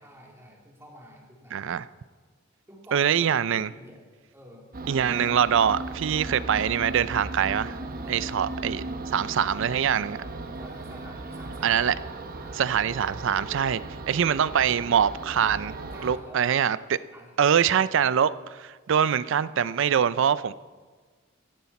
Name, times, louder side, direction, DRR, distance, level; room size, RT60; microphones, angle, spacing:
voice 1, 0.0-1.7 2.7-4.0 4.3-4.7 8.0-8.4 8.9-9.0 10.6-11.9 12.4-12.8 15.9-16.6 17.1-17.7, equal, 15° right, -2 dB, 2.7 m, -49 dB
voice 2, 1.5-1.8 2.9-3.7 4.9-7.8 8.1-10.2 11.6-11.9 12.6-13.8 14.1-15.8 16.0-17.0 17.4-20.5, right 8 dB, 65° right, 17 dB, 0.4 m, -24 dB
sound 1, 4.7-16.2, right 2 dB, 45° right, 0.9 m, -37 dB
15.5 x 13.0 x 4.2 m, 1.4 s
head